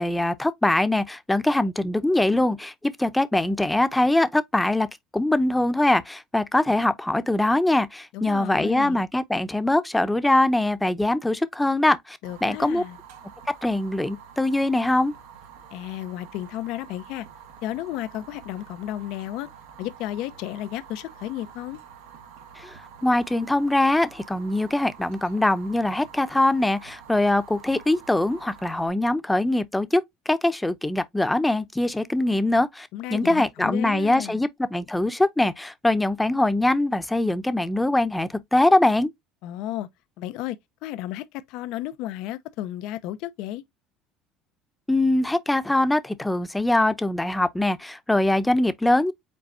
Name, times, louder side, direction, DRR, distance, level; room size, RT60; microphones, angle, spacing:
voice 1, 0.0-4.9 5.1-12.8 13.6-15.1 22.6-39.1 44.9-49.1, left 1 dB, 10° left, 0.7 m, -22 dB
voice 2, 8.1-9.0 12.2-13.0 15.7-17.3 17.6-19.5 19.8-21.8 32.9-34.4 39.4-39.9 40.2-43.6, left 13 dB, 70° left, 0.5 m, -33 dB
Fire, 12.2-28.9, right 7 dB, 90° right, 1.4 m, -47 dB
5.4 x 4.0 x 2.5 m
supercardioid pair, 100°, 0 cm